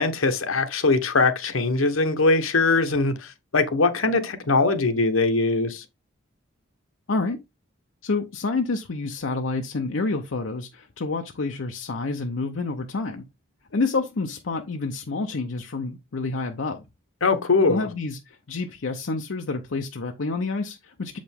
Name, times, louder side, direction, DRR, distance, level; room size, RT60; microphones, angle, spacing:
voice 1, 0.0-5.8 17.2-17.9, left 3 dB, 85° left, 1.0 m, -21 dB
voice 2, 7.1-7.4 8.0-13.2 13.7-16.9 17.7-21.2, left 3 dB, 70° left, 0.7 m, -28 dB
6.9 x 5.1 x 3.5 m
head